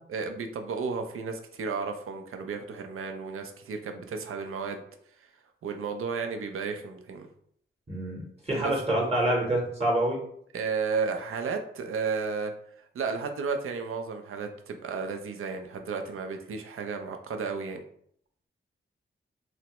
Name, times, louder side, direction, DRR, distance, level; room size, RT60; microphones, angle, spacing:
voice 1, 0.1-4.8 5.6-7.3 8.5-8.7 10.5-12.5 12.9-17.8, right 5 dB, 85° right, 5 dB, 0.4 m, -33 dB
voice 2, 7.9-10.2, right 1 dB, 30° right, -1 dB, 0.8 m, -27 dB
3.2 x 2.0 x 2.9 m, 0.66 s
wide cardioid pair, 80°, 21 cm